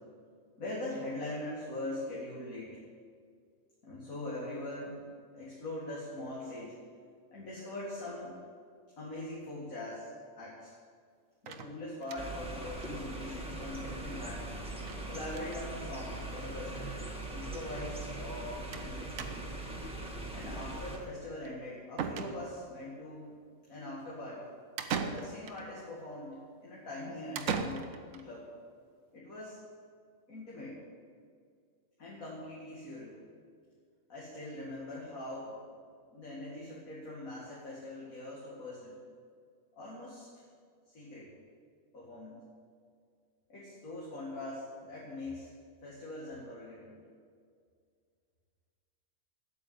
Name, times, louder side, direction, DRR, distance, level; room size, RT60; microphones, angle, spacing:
voice 1, 0.6-2.8 3.8-5.0 5.3-6.8 7.3-8.4 9.0-10.7 11.4-14.5 15.1-19.3 20.3-23.4 23.7-24.5 25.0-28.5 29.1-29.6 30.3-30.8 32.0-33.2 34.1-35.6 36.1-39.0 39.8-40.4 40.9-41.3 41.9-42.4 43.5-45.5 45.8-47.0, left 1 dB, 70° left, -7 dB, 2.6 m, -42 dB
sound 1, 11.5-12.5 12.8-12.9 13.2-13.3 13.5-13.6 14.8-15.0 15.3-15.6 16.5-16.6 16.9-17.0 18.7-18.9 19.2-19.7 21.4-21.5 22.0-22.8 24.8-25.6 27.3-28.2, right 6 dB, 65° right, 1.1 m, -38 dB
sound 2, 12.2-21.0, right 2 dB, 5° right, 1.5 m, -41 dB
8.8 x 8.2 x 9.3 m, 2.2 s
omnidirectional pair, 1.5 m